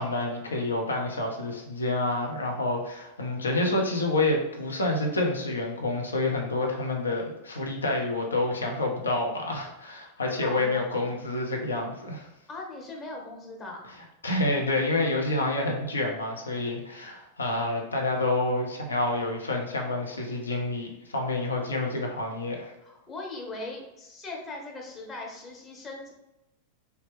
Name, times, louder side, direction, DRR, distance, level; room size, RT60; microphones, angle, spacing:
voice 1, 0.0-12.3 14.2-22.7, left 2 dB, 75° left, 1 dB, 0.6 m, -28 dB
voice 2, 10.4-11.1 12.5-13.9 22.8-26.1, left 2 dB, 25° left, -1 dB, 0.9 m, -40 dB
3.3 x 2.8 x 3.3 m, 0.91 s
figure-of-eight pair, 90°, 0 cm